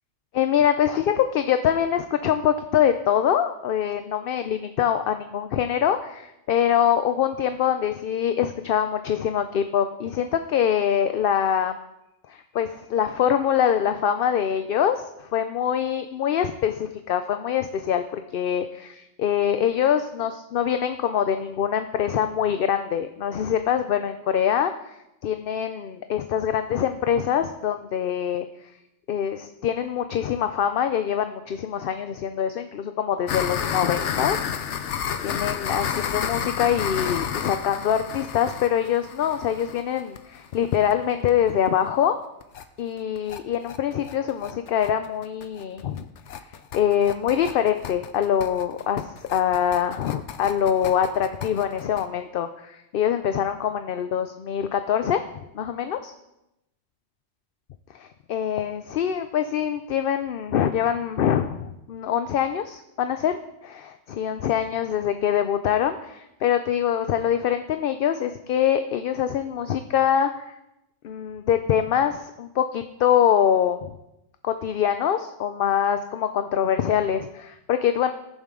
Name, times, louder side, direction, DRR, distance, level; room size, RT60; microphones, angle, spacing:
voice 1, 0.3-11.8 12.3-25.0 25.2-28.5 29.1-34.4 34.7-34.9 35.2-42.1 42.8-46.1 46.7-55.2 55.5-56.1 57.9-70.5 71.0-73.9 74.4-78.1, left 9 dB, 60° left, 9 dB, 0.7 m, -24 dB
sound 1, 33.3-40.9 41.3-41.4 41.7-41.8 42.0-42.1 42.4-42.6 43.0-52.1, left 8 dB, 80° left, 1.1 m, -31 dB
20.5 x 7.2 x 3.7 m, 0.89 s
omnidirectional pair, 1.2 m